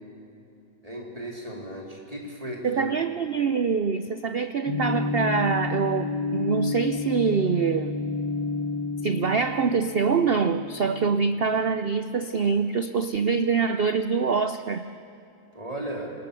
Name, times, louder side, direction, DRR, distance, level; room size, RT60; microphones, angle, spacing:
voice 1, 0.8-3.0 15.5-16.1, right 1 dB, 20° right, -1 dB, 3.6 m, -36 dB
voice 2, 2.6-8.0 9.0-14.8, right 5 dB, 85° right, 10 dB, 0.5 m, -25 dB
sound 1, 4.7-11.5, left 3 dB, 80° left, 2.8 m, -31 dB
26.5 x 20.5 x 6.8 m, 2.8 s
omnidirectional pair, 1.9 m